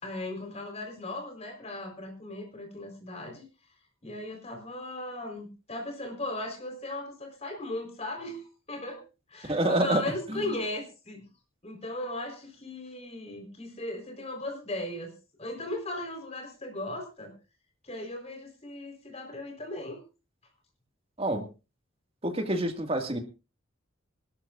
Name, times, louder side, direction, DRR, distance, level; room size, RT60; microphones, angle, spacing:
voice 1, 0.0-3.5 4.0-9.0 9.3-11.2 11.6-15.1 15.4-17.3 17.8-20.0, left 1 dB, 30° left, 4 dB, 4.3 m, -37 dB
voice 2, 9.5-10.0 10.3-10.5 21.2-21.4 22.2-23.2, right 1 dB, 30° right, 5 dB, 2.0 m, -27 dB
26.0 x 12.5 x 2.5 m, 0.31 s
head